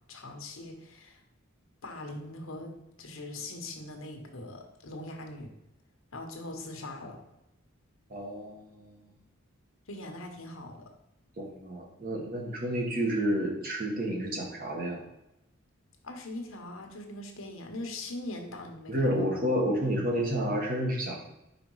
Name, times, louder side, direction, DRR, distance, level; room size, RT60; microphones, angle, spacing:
voice 1, 0.1-1.2 1.8-2.7 3.0-5.5 6.1-7.2 9.9-10.9 16.0-19.4, left 2 dB, 80° left, 3 dB, 1.2 m, -41 dB
voice 2, 8.1-8.6 11.4-15.0 18.9-21.2, equal, 45° right, 0 dB, 1.5 m, -30 dB
5.1 x 5.1 x 4.7 m, 0.85 s
head